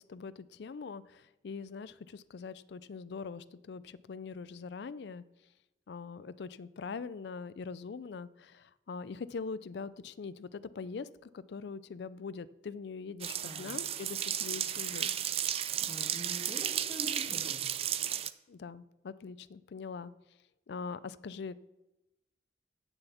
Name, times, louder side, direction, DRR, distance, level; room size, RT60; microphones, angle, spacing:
voice 1, 0.0-5.2 5.9-15.1 18.5-20.1 20.7-21.6, left 5 dB, 65° left, 17 dB, 0.4 m, -42 dB
sound 1, 13.2-18.3, right 10 dB, 30° right, 0.3 m, -34 dB
voice 2, 13.4-13.7 15.6-17.6, right 1 dB, 10° left, -4 dB, 1.9 m, -45 dB
9.1 x 7.0 x 6.9 m, 0.97 s
head